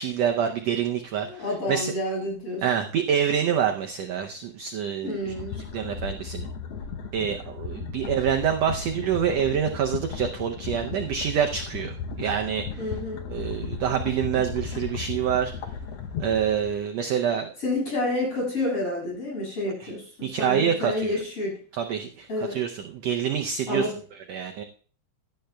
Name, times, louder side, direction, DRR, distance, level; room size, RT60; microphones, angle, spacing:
voice 1, 0.0-1.9 2.6-6.5 7.1-12.8 13.3-15.5 16.2-17.5 19.8-19.9 20.2-21.2 21.7-24.6, right 8 dB, 75° right, 3 dB, 1.5 m, -27 dB
voice 2, 1.3-2.7 5.0-5.6 12.8-13.2 17.6-21.5 22.3-22.6 23.7-23.9, left 2 dB, 45° left, -3 dB, 7.8 m, -29 dB
sound 1, 5.2-16.7, left 6 dB, 70° left, 1.5 m, -35 dB
17.0 x 11.5 x 2.3 m, 0.42 s
omnidirectional pair, 3.8 m